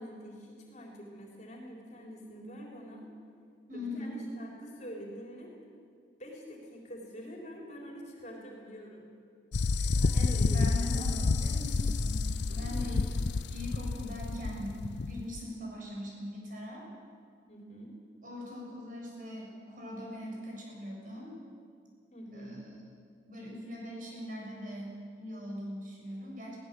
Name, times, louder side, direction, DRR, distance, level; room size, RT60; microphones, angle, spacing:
voice 1, 0.0-3.1 3.7-5.5 6.2-9.2 9.8-11.1 12.5-13.0 17.5-18.0 22.1-22.6, equal, 35° left, -1 dB, 4.0 m, -46 dB
voice 2, 3.7-4.2 9.8-13.2 13.5-16.9 18.2-21.4 22.3-22.7 23.3-26.6, left 1 dB, 45° right, -2 dB, 6.7 m, -41 dB
sound 1, 9.5-15.4, left 3 dB, 65° left, 0.5 m, -29 dB
21.5 x 17.5 x 7.7 m, 2.2 s
head